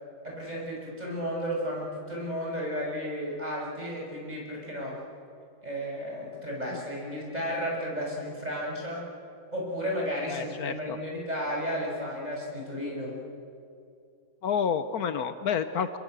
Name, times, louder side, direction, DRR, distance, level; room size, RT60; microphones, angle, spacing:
voice 1, 0.2-5.0 5.6-9.1 9.5-13.2, equal, 25° right, -2 dB, 6.7 m, -33 dB
voice 2, 10.3-11.0 14.4-16.0, left 7 dB, 70° left, 11 dB, 1.4 m, -29 dB
27.5 x 22.0 x 8.1 m, 2.4 s
omnidirectional pair, 1.7 m